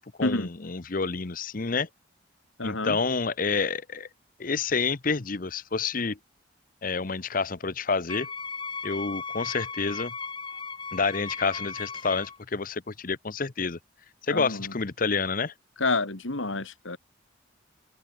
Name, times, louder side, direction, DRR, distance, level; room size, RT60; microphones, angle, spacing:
voice 1, 0.0-1.9 2.6-4.1 4.4-6.2 6.8-8.3 8.8-10.1 10.9-13.8 14.3-15.5, left 4 dB, 45° left, 0.8 m, -28 dB
voice 2, 2.6-3.0 14.3-14.7 15.8-17.0, left 3 dB, 75° left, 2.5 m, -29 dB
Wind instrument woodwind instrument, 8.1-12.4, left 5 dB, 25° left, 2.7 m, -36 dB
open air
head